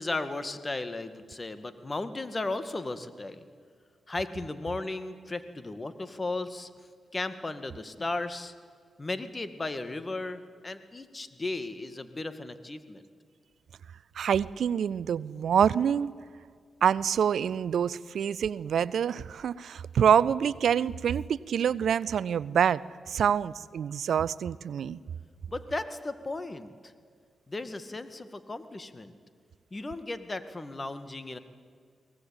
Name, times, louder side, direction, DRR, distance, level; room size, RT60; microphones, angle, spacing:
voice 1, 0.0-3.5 4.1-6.7 7.1-8.5 9.0-13.0 25.5-26.9 27.5-29.2 29.7-31.4, left 2 dB, 35° left, 11 dB, 2.1 m, -35 dB
voice 2, 14.2-16.1 16.8-22.8 23.1-25.0, right 8 dB, 70° right, 20 dB, 0.5 m, -26 dB
23.0 x 19.0 x 8.8 m, 2.1 s
supercardioid pair, 40°, 0 cm